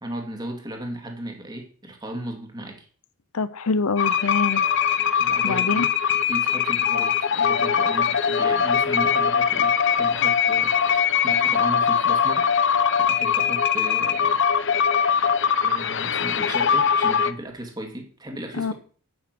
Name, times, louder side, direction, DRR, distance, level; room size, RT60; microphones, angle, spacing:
voice 1, 0.0-2.9 5.0-5.9 6.3-14.4 14.7-14.8 15.6-18.7, right 1 dB, 20° right, 3 dB, 2.6 m, -36 dB
voice 2, 3.3-4.6 5.4-5.9 18.6-18.7, left 4 dB, 80° left, 15 dB, 0.8 m, -25 dB
sound 1, 4.0-17.3, left 7 dB, 55° left, 0.8 m, -21 dB
10.0 x 9.1 x 6.1 m, 0.42 s
head